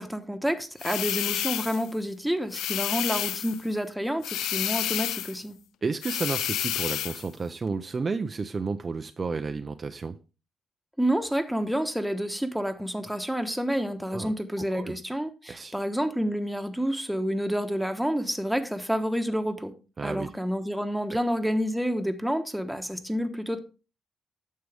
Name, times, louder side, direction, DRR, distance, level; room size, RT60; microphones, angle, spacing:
voice 1, 0.0-5.6 11.0-19.7 20.0-23.6, equal, ahead, 1.2 m, -29 dB
sound 1, 0.8-1.9 2.5-3.6 4.2-5.4 6.0-7.3, left 12 dB, 85° left, 0.4 m, -30 dB
voice 2, 5.8-10.2 14.1-14.9 15.5-15.8 20.0-20.3, right 4 dB, 35° right, 0.6 m, -32 dB
9.6 x 6.7 x 3.4 m
cardioid pair, 90°, 0 cm